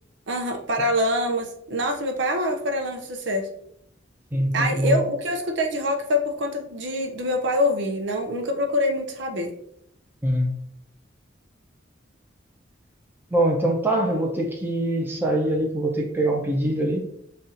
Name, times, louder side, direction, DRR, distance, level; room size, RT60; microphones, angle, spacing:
voice 1, 0.3-3.5 4.5-9.5, left 1 dB, 65° right, 3 dB, 0.6 m, -25 dB
voice 2, 4.3-5.0 10.2-10.6 13.3-17.1, right 1 dB, 10° right, -1 dB, 0.7 m, -23 dB
7.2 x 2.4 x 2.7 m, 0.74 s
head